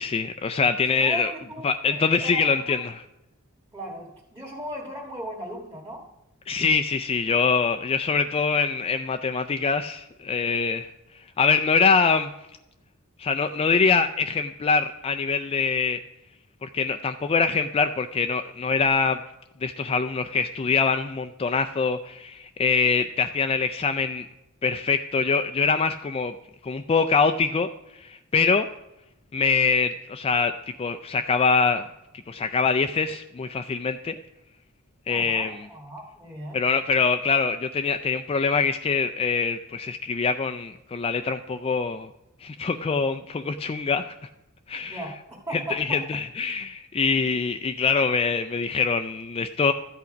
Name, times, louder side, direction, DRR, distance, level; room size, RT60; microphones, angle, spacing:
voice 1, 0.0-1.3 1.6-2.9 6.5-10.9 11.4-12.3 13.2-16.0 16.6-19.2 19.6-24.3 24.6-26.3 26.6-27.7 28.0-28.7 29.3-31.9 32.3-34.1 35.1-35.6 36.5-42.1 42.4-44.1 44.7-45.0 45.5-49.7, left 5 dB, 25° left, 8 dB, 0.3 m, -24 dB
voice 2, 0.9-2.8 3.7-6.1 35.1-36.6 44.9-46.1, right 1 dB, 15° right, -3 dB, 1.6 m, -37 dB
13.0 x 8.4 x 5.1 m, 0.92 s
head